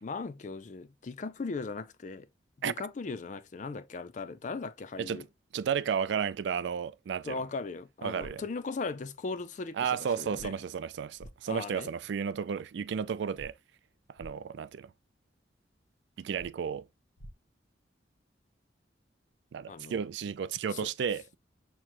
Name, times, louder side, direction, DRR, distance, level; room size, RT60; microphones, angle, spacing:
voice 1, 0.0-2.3 2.6-5.3 7.2-10.5 11.5-11.9 19.7-20.0 20.7-20.9, left 4 dB, 40° left, 0.4 m, -38 dB
voice 2, 5.5-7.4 8.0-8.4 9.8-13.5 14.2-14.9 16.2-16.9 19.5-21.4, right 7 dB, 75° right, 0.3 m, -33 dB
sound 1, 8.2-8.3 10.3-10.5 11.2-11.3 13.3-13.5 14.2-14.3 16.3-16.5 17.2-17.3, equal, 85° left, 0.9 m, -47 dB
5.9 x 3.0 x 2.6 m
head